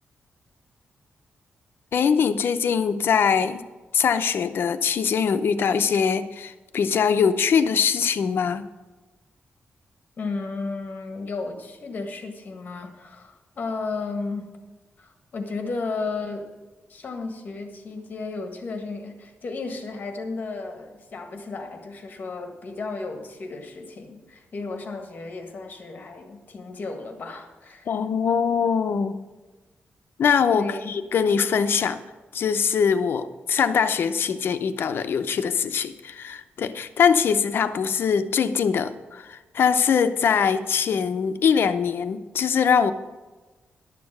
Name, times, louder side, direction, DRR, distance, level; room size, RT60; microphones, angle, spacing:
voice 1, 1.9-3.6 3.9-8.6 27.9-29.1 30.2-32.0 32.3-42.9, left 6 dB, 65° left, 10 dB, 0.7 m, -22 dB
voice 2, 10.2-14.5 15.0-16.5 16.9-27.9 30.5-30.9, left 3 dB, 45° left, 5 dB, 1.6 m, -34 dB
11.5 x 6.8 x 6.6 m, 1.2 s
wide cardioid pair, 150°, 4 cm